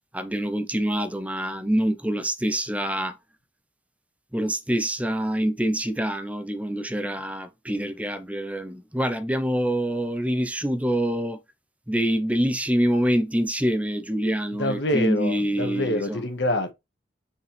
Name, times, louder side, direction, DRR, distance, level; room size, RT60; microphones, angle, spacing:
voice 1, 0.1-3.2 4.3-11.4 11.9-16.2, equal, 5° right, 0.9 m, -25 dB
voice 2, 14.6-16.7, left 1 dB, 70° left, 1.7 m, -26 dB
6.7 x 5.5 x 3.5 m
head